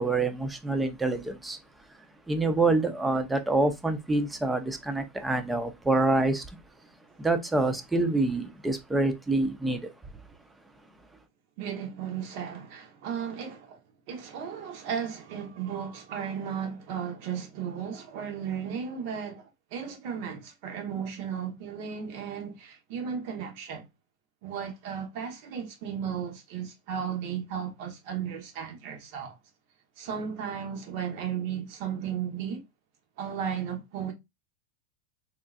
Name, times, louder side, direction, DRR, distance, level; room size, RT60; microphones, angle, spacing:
voice 1, 0.0-1.6 2.3-6.5 7.2-9.9, right 2 dB, 10° right, 0.5 m, -26 dB
voice 2, 11.6-13.8 14.1-23.9 24.4-29.4 30.0-32.6 33.2-34.1, right 7 dB, 60° right, 0.9 m, -35 dB
3.7 x 2.4 x 2.3 m
hypercardioid pair, 115°, 0 cm